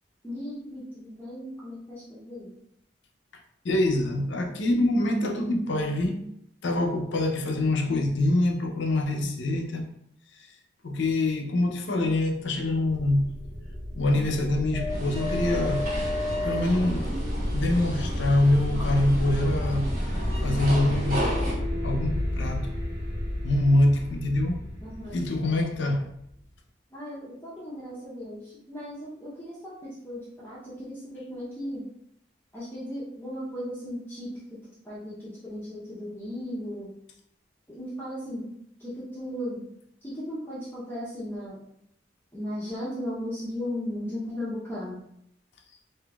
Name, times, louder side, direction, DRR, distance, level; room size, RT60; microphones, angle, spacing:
voice 1, 0.2-2.5 24.8-25.2 26.9-28.4 28.7-29.7 30.0-31.8 32.5-34.3 34.9-35.1 35.4-36.9 37.7-38.5 39.1-39.6 40.2-41.6 42.3-45.0, equal, 10° left, -9 dB, 0.7 m, -36 dB
voice 2, 3.6-6.2 6.6-9.9 10.8-13.4 13.9-15.9 16.4-17.1 17.5-20.0 20.4-21.3 21.8-22.7 23.4-24.6 25.1-26.1, left 1 dB, 70° left, 2 dB, 0.5 m, -25 dB
sound 1, 12.7-26.4, left 1 dB, 20° right, 1.0 m, -31 dB
sound 2, 14.9-21.5, right 1 dB, 45° right, 0.9 m, -35 dB
3.7 x 2.6 x 2.3 m, 0.75 s
head